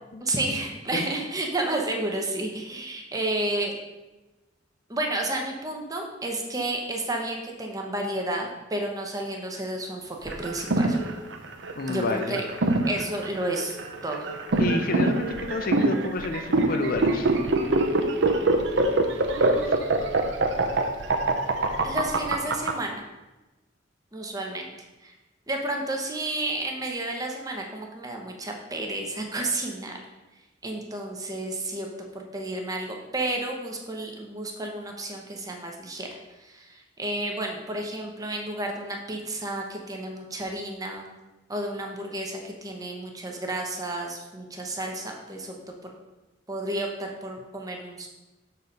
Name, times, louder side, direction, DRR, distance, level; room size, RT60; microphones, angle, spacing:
voice 1, 0.2-3.8 4.9-10.9 11.9-12.4 12.9-13.8 14.0-14.3 19.3-19.9 21.8-23.0 24.1-24.7 25.0-25.1 25.5-30.0 30.6-31.9 32.1-36.1 36.4-41.1 41.5-45.5 45.8-45.9 46.5-48.1, right 1 dB, 20° right, 1 dB, 0.9 m, -31 dB
sound 1, 10.3-22.7, right 2 dB, 65° right, 0.7 m, -24 dB
voice 2, 11.8-12.4 14.6-17.3, left 3 dB, 50° left, 6 dB, 0.5 m, -29 dB
6.6 x 4.3 x 5.2 m, 1.1 s
head